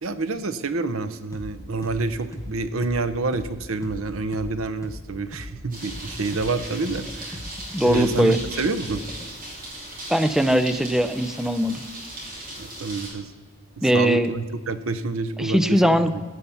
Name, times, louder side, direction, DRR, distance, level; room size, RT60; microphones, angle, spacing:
voice 1, 0.0-7.4 7.8-9.0 12.6-13.3 13.8-16.0, right 3 dB, 75° right, 13 dB, 0.8 m, -28 dB
sound 1, 1.3-1.5 1.8-5.5 5.8-9.3, left 1 dB, 15° left, 1.1 m, -38 dB
sound 2, 5.7-13.1, right 1 dB, 45° right, 3.7 m, -38 dB
voice 2, 7.7-8.4 10.1-11.8 13.8-14.3 15.4-16.1, equal, ahead, 11 dB, 0.4 m, -20 dB
15.0 x 5.7 x 6.9 m, 1.5 s
head